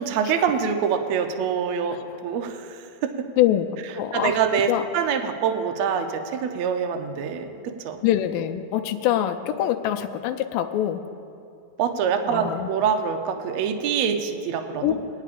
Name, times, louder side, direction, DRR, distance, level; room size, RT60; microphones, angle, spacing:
voice 1, 0.0-2.0 2.2-3.3 4.1-8.0 9.1-9.2 11.8-15.0, right 7 dB, 85° right, 5 dB, 1.5 m, -25 dB
voice 2, 3.4-3.7 4.0-4.4 4.7-4.8 8.0-11.0 12.3-12.7 14.8-14.9, left 12 dB, 80° left, 6 dB, 2.1 m, -24 dB
23.0 x 9.6 x 2.5 m, 2.5 s
omnidirectional pair, 4.1 m